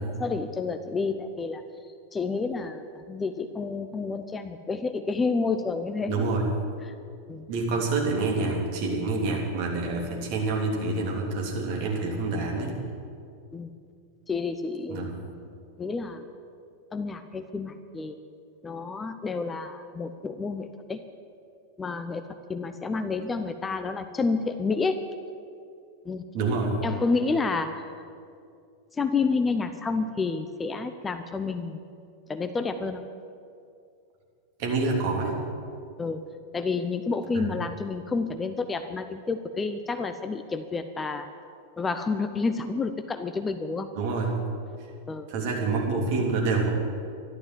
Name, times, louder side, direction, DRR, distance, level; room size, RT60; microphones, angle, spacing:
voice 1, 0.0-1.6 2.1-6.2 6.8-6.9 7.3-7.4 13.5-13.7 14.3-15.1 15.8-16.2 16.9-18.2 18.6-21.0 21.8-25.0 26.0-26.2 26.8-28.1 28.9-31.8 32.3-33.0 36.0-36.2 36.5-41.3 41.8-43.9 45.1-45.3, left 4 dB, 15° left, 9 dB, 0.7 m, -29 dB
voice 2, 6.1-6.4 7.5-12.7 14.9-15.1 26.3-26.7 34.6-35.4 43.9-44.3 45.3-46.7, right 3 dB, 45° right, -1 dB, 3.3 m, -27 dB
13.0 x 11.5 x 7.8 m, 2.4 s
figure-of-eight pair, 90°, 0 cm